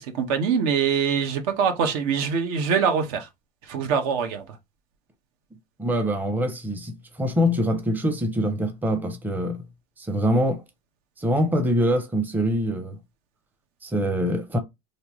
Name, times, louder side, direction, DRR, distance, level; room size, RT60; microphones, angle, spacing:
voice 1, 0.0-3.3 3.7-4.4, right 6 dB, 70° right, 1.1 m, -24 dB
voice 2, 5.8-9.6 10.0-10.6 11.2-13.0 13.8-14.6, equal, 10° right, 0.7 m, -24 dB
3.3 x 2.6 x 3.0 m
supercardioid pair, 110°, 20 cm